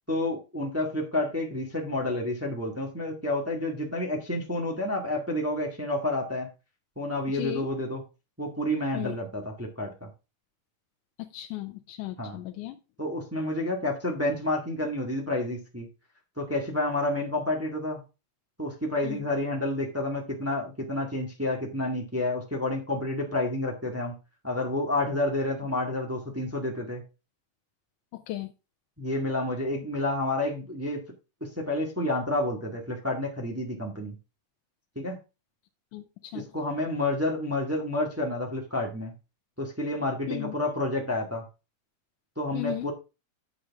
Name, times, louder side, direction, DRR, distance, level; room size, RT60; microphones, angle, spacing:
voice 1, 0.1-6.5 6.9-8.0 8.4-10.1 12.2-12.4 13.0-15.9 16.4-18.0 18.6-24.1 24.4-27.0 29.0-31.0 31.4-34.1 34.9-35.2 36.3-39.1 39.6-41.4 42.4-42.9, left 1 dB, 10° right, 0 dB, 0.7 m, -29 dB
voice 2, 7.3-7.7 8.9-9.2 11.2-12.8 19.0-19.3 28.1-28.5 35.9-36.5 40.3-40.5 42.5-42.9, left 16 dB, 85° left, 6 dB, 2.1 m, -36 dB
9.4 x 6.5 x 3.6 m, 0.29 s
omnidirectional pair, 3.6 m